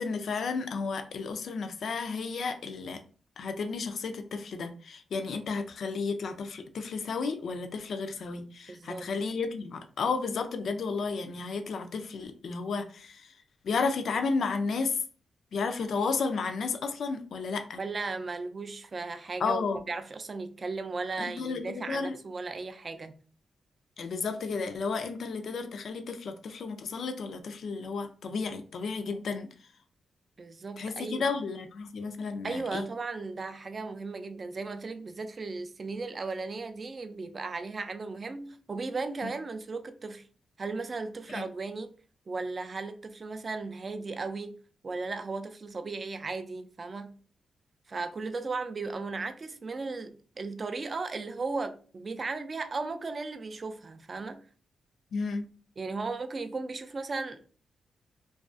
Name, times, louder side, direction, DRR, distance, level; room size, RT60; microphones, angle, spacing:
voice 1, 0.0-3.0 3.4-13.3 13.6-15.0 15.5-17.8 19.4-19.8 21.2-22.2 24.0-29.5 30.8-32.9 39.2-39.3 41.3-41.4 55.1-55.5, left 4 dB, 70° left, 0.3 m, -32 dB
voice 2, 8.7-9.1 17.8-23.2 30.4-31.3 32.4-40.2 40.6-41.9 42.3-44.6 44.8-47.1 47.9-54.4 55.8-57.4, right 3 dB, 40° right, 0.3 m, -36 dB
2.3 x 2.3 x 2.4 m
cardioid pair, 85°, 0 cm